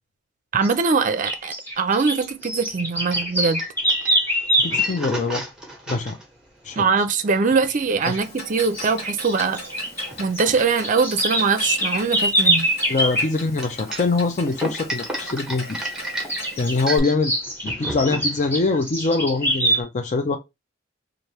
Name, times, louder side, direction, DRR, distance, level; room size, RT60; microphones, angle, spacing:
voice 1, 0.5-3.6 6.8-9.6 10.2-12.7, right 4 dB, 45° right, 0.5 m, -22 dB
sound 1, 0.6-0.8 1.2-4.9 7.5-8.2 8.6-10.1 10.3-13.3 16.3-16.7 17.2-19.8, right 1 dB, 10° left, 1.3 m, -24 dB
sound 2, 2.4-19.1, right 1 dB, 5° right, 1.0 m, -35 dB
voice 2, 4.6-5.4 5.9-6.1 6.6-6.9 8.1-8.2 12.9-15.8 16.6-17.3 17.6-20.4, left 3 dB, 40° left, 0.5 m, -23 dB
Clock, 8.2-17.0, left 1 dB, 55° left, 1.5 m, -38 dB
3.4 x 2.5 x 4.1 m
head